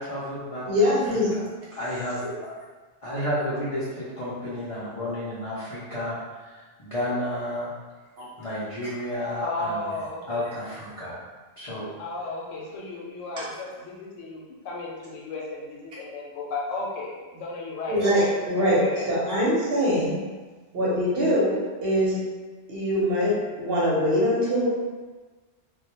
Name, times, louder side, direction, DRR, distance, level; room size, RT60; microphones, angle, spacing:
voice 1, 0.0-0.9 1.3-1.4 1.7-2.3 3.0-7.7 8.4-9.9 10.3-11.1 11.6-11.9 17.9-18.1, left 1 dB, 60° left, -9 dB, 0.3 m, -31 dB
voice 2, 0.7-1.4 13.4-13.5 17.9-18.8 19.1-20.2 20.7-22.2 22.7-24.7, equal, 60° right, -6 dB, 0.9 m, -23 dB
voice 3, 9.4-10.5 12.0-19.1, left 2 dB, 90° left, -3 dB, 0.9 m, -34 dB
2.1 x 2.1 x 2.8 m, 1.3 s
omnidirectional pair, 1.2 m